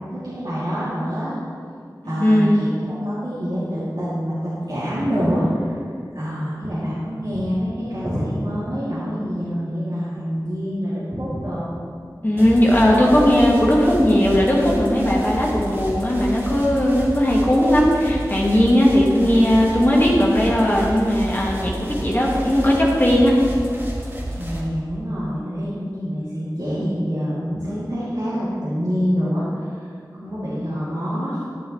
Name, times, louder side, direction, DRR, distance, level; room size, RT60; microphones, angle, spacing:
voice 1, 0.0-1.3 2.0-5.8 6.1-11.7 24.4-29.9 30.2-31.4, equal, 70° right, -12 dB, 2.6 m, -26 dB
voice 2, 2.2-2.6 12.2-23.3, equal, 25° left, -4 dB, 1.6 m, -17 dB
sound 1, 12.4-24.6, equal, 30° right, 1.8 m, -30 dB
10.5 x 10.5 x 3.1 m, 2.3 s
wide cardioid pair, 45°, 8 cm